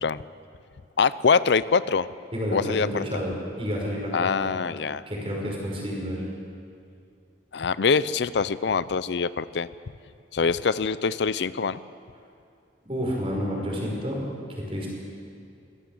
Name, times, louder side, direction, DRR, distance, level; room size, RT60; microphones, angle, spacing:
voice 1, 1.0-2.1 2.5-3.2 4.1-5.0 7.5-9.7 10.3-11.8, left 5 dB, 70° left, 17 dB, 0.5 m, -24 dB
voice 2, 2.3-4.5 5.1-6.2 12.8-14.2 14.5-14.9, equal, 30° right, -2 dB, 5.6 m, -30 dB
23.0 x 17.0 x 7.7 m, 2.5 s
head